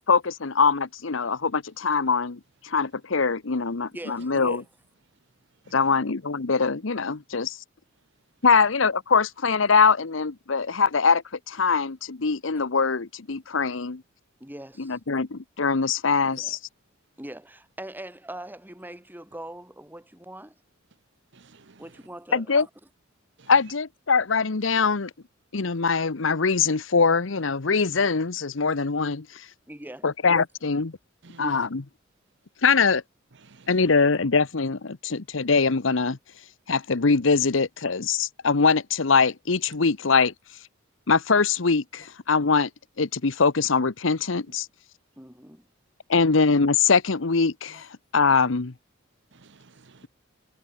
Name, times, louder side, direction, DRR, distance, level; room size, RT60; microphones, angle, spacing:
voice 1, 0.1-4.6 5.7-7.6 8.4-14.0 14.8-16.6 22.3-22.6 23.5-25.1 25.5-29.3 30.0-30.9 31.4-31.8 32.6-33.0 33.7-36.2 36.7-40.3 41.1-42.7 43.0-44.7 46.1-47.9 48.1-48.7, left 5 dB, 75° left, 1.0 m, -23 dB
voice 2, 3.9-4.6 14.4-15.0 16.2-16.6 17.2-20.5 21.8-22.7 29.7-30.1 31.5-31.6 45.2-45.7, right 1 dB, 10° right, 5.2 m, -42 dB
voice 3, 21.3-21.9 23.4-23.5 31.2-31.7 33.4-33.8 49.3-50.1, right 3 dB, 65° right, 1.0 m, -47 dB
head